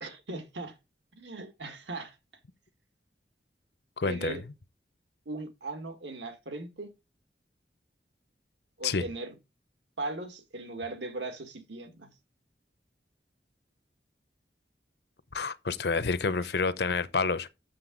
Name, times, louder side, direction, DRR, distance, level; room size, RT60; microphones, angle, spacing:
voice 1, 0.0-0.8 1.2-2.2 4.0-4.4 5.3-6.9 8.8-9.3 10.0-12.1, right 2 dB, 85° right, 1.8 m, -38 dB
voice 2, 4.0-4.4 8.8-9.0 15.3-17.5, left 4 dB, 65° left, 0.7 m, -28 dB
7.6 x 6.8 x 3.8 m
head